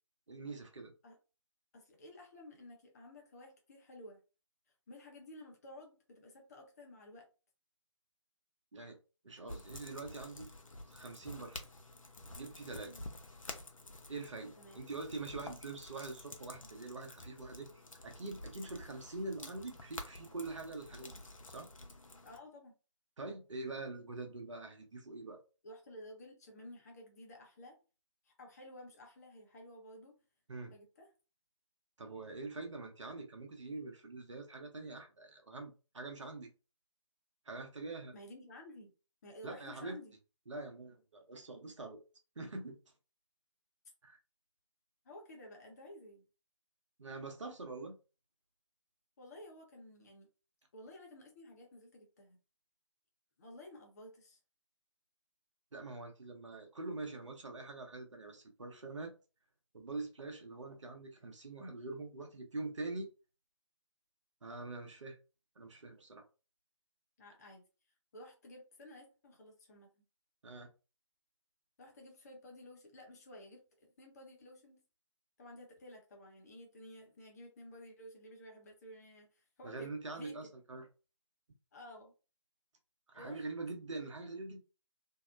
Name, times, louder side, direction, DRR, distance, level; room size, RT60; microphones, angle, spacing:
voice 1, 0.3-0.9 8.7-9.0 9.2-10.5 10.9-11.7 12.4-12.9 14.1-21.2 21.5-21.7 23.2-25.4 30.5-30.7 32.0-36.5 37.5-38.1 39.4-40.0 40.5-42.0 42.4-42.8 44.0-44.2 47.0-48.0 55.7-59.1 59.7-63.1 64.4-65.2 65.6-66.2 70.4-70.7 79.6-80.9 83.1-84.6, right 3 dB, 65° right, 4 dB, 0.8 m, -44 dB
voice 2, 1.7-4.2 4.9-7.3 12.9-13.1 14.6-14.8 22.2-22.7 25.6-27.8 28.2-30.1 30.7-31.1 38.1-38.9 39.2-40.1 45.0-46.2 49.2-50.3 50.7-52.4 53.4-54.4 67.2-67.6 68.1-69.9 71.8-74.8 75.4-80.4 81.7-82.1 83.1-83.4 83.9-84.0, left 1 dB, 30° left, 0 dB, 0.8 m, -53 dB
sound 1, 9.5-22.4, left 2 dB, 85° left, 0.6 m, -50 dB
2.7 x 2.1 x 2.4 m, 0.32 s
figure-of-eight pair, 150°, 17 cm